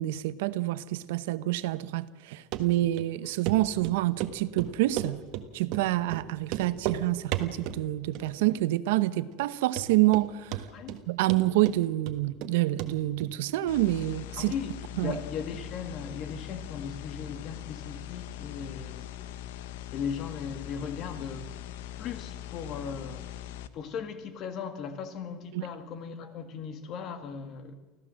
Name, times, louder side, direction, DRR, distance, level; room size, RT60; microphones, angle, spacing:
voice 1, 0.0-5.2 5.5-10.7 11.1-14.5 15.0-15.2 25.5-25.7, right 16 dB, 80° right, 0.9 m, -27 dB
Run, 2.5-2.6 3.0-3.1 3.4-3.6 3.8-5.4 5.7-5.8 6.1-6.2 6.5-7.0 7.3-7.8 8.1-8.6 8.9-9.0 9.4-9.5 9.8-10.3 10.5-11.0 11.3-12.5 12.8-12.9 13.2-13.3, right 13 dB, 45° right, 1.4 m, -33 dB
sound 1, 13.7-23.7, left 11 dB, 90° left, 1.2 m, -41 dB
voice 2, 14.4-14.7 15.0-19.3 19.9-21.5 22.0-23.3 23.7-27.7, left 6 dB, 35° left, 1.7 m, -37 dB
24.5 x 15.5 x 7.6 m
cardioid pair, 170°, 0 cm